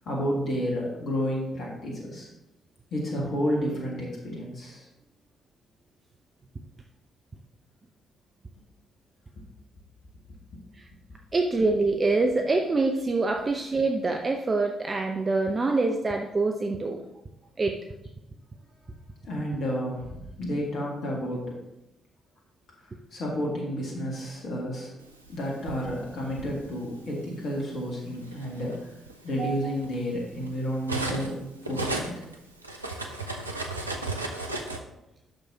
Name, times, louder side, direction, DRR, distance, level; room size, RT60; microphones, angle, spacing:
voice 1, 0.1-2.3 2.9-4.9 19.2-21.4 23.1-24.9 25.3-28.8 29.2-31.4 31.6-32.2, equal, 50° left, -2 dB, 1.8 m, -31 dB
voice 2, 11.3-17.0 17.6-17.8 29.4-29.7, right 3 dB, 30° right, 3 dB, 0.6 m, -25 dB
Cutlery silverware, 25.3-26.5 27.5-27.7 28.1-31.4 31.6-34.8, right 2 dB, 85° right, 0.4 m, -34 dB
9.5 x 6.3 x 2.8 m, 0.93 s
figure-of-eight pair, 40°, 0 cm